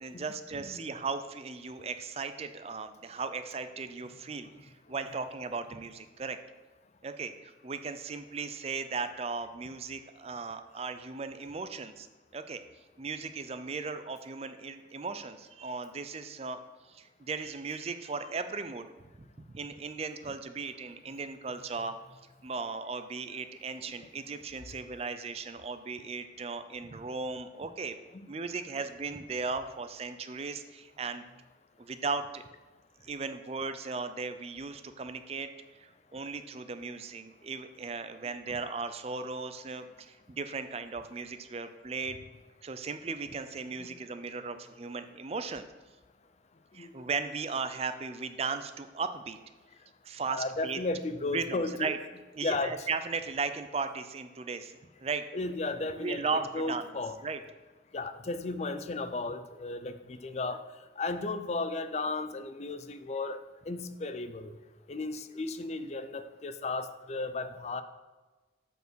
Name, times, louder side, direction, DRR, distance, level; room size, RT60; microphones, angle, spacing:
voice 1, 0.0-6.4 7.0-12.1 12.3-12.6 13.0-16.6 16.9-18.9 19.2-21.9 22.4-28.0 28.3-31.2 31.8-32.4 33.0-35.5 35.8-42.2 42.6-45.7 46.7-49.4 50.0-50.8 51.3-51.4 51.8-52.0 52.3-55.2 55.9-56.8 57.2-57.4, right 4 dB, 35° right, 10 dB, 0.4 m, -37 dB
voice 2, 50.2-51.9 52.4-52.9 55.3-57.2 57.9-60.6 61.0-63.4 63.7-64.5 64.9-67.8, left 3 dB, 35° left, 11 dB, 0.4 m, -34 dB
8.1 x 4.6 x 6.2 m, 1.2 s
head